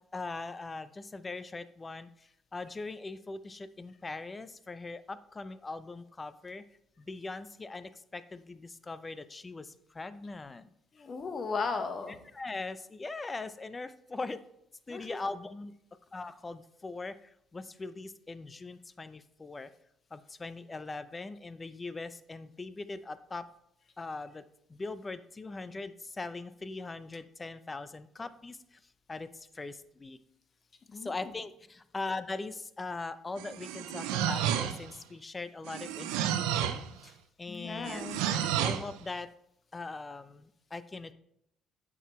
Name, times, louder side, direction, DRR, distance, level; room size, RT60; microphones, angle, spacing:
voice 1, 0.1-2.1 2.5-6.6 7.0-10.7 12.3-14.4 14.9-15.7 16.1-17.1 17.5-19.7 20.1-23.5 24.0-24.4 24.7-28.6 29.1-29.3 29.5-30.2 31.0-37.1 37.4-39.3 39.7-41.1, left 3 dB, 25° left, 13 dB, 0.6 m, -41 dB
voice 2, 10.9-12.2 14.9-15.1 30.9-31.2 37.5-38.2, left 4 dB, 45° left, 8 dB, 1.2 m, -36 dB
sound 1, 33.4-35.0 35.7-36.9 37.9-38.9, right 10 dB, 85° right, 0.5 m, -31 dB
9.0 x 6.1 x 3.2 m, 0.76 s
supercardioid pair, 65°, 0 cm